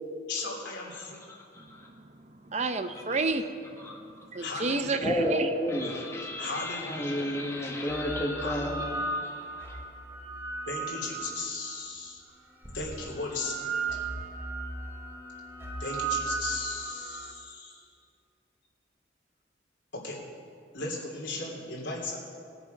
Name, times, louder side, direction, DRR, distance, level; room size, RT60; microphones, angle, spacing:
voice 1, 0.3-1.2 4.3-4.9 6.4-7.3 8.4-8.7 10.7-12.2 12.7-13.8 15.8-17.8 19.9-20.3 20.7-22.2, left 3 dB, 85° left, 3.0 m, -36 dB
voice 2, 0.9-1.2 1.5-1.9 3.8-3.9 5.0-9.8, equal, 15° left, 1.6 m, -32 dB
voice 3, 1.6-3.5 3.9-5.5 6.4-6.5, right 3 dB, 40° right, 0.6 m, -31 dB
sound 1, 6.6-6.7 7.6-11.9 12.6-17.3, right 3 dB, 15° right, 1.2 m, -36 dB
20.0 x 6.9 x 5.2 m
head